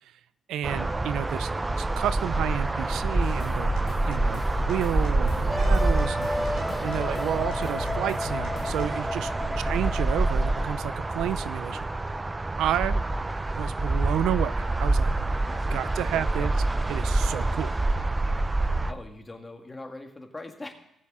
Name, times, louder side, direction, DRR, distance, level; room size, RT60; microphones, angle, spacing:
voice 1, 0.5-1.5 1.8-3.8 4.1-4.4 4.7-9.3 9.6-11.9 12.6-13.0 13.5-15.1 15.7-16.5 16.9-17.8, right 11 dB, 85° right, 15 dB, 0.4 m, -31 dB
sound 1, 0.6-18.9, right 2 dB, 20° right, 0.5 m, -27 dB
sound 2, 3.2-8.9, left 5 dB, 80° left, 1.9 m, -37 dB
Wind instrument woodwind instrument, 5.5-11.0, left 1 dB, ahead, 2.1 m, -34 dB
voice 2, 16.1-16.6 18.9-20.7, left 2 dB, 20° left, 5 dB, 1.6 m, -42 dB
18.5 x 7.3 x 3.6 m, 0.79 s
cardioid pair, 90°, 0 cm